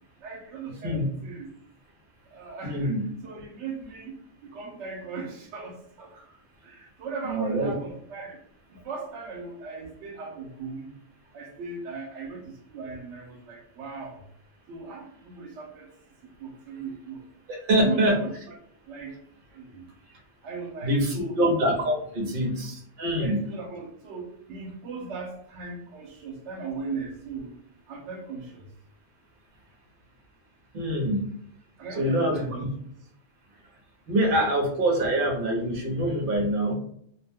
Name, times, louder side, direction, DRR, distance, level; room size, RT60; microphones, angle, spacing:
voice 1, 0.2-1.5 2.3-4.1 4.4-6.2 6.6-8.4 8.7-10.9 11.3-14.2 14.7-15.9 16.4-17.2 17.8-18.3 18.9-19.2 19.5-19.8 20.4-21.4 22.2-22.3 23.1-27.5 27.9-28.7 31.8-32.6, right 4 dB, 90° right, 2 dB, 0.9 m, -38 dB
voice 2, 2.6-3.0 7.2-7.7 17.5-18.2 20.8-23.4 30.7-31.2 32.0-32.5 34.1-36.7, right 1 dB, 55° right, 0 dB, 0.9 m, -25 dB
2.5 x 2.1 x 3.4 m, 0.66 s
omnidirectional pair, 1.1 m